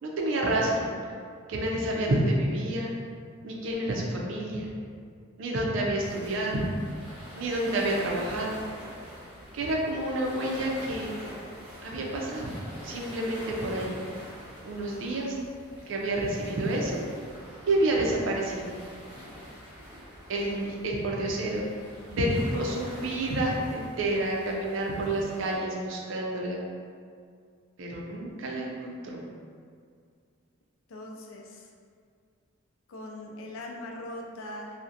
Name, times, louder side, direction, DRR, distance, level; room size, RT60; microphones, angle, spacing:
voice 1, 0.0-0.9 1.5-2.9 3.4-4.7 5.4-6.7 7.4-8.6 9.5-11.1 11.8-12.5 12.8-14.0 14.6-15.4 15.9-17.0 17.7-18.8 20.3-21.7 22.1-26.6 27.8-29.2, right 1 dB, 70° right, -1 dB, 0.4 m, -29 dB
sound 1, 6.0-25.6, equal, 5° right, 0.9 m, -45 dB
voice 2, 30.9-31.7 32.9-34.8, left 1 dB, 80° left, 0 dB, 0.4 m, -40 dB
2.6 x 2.0 x 2.4 m, 2.2 s
head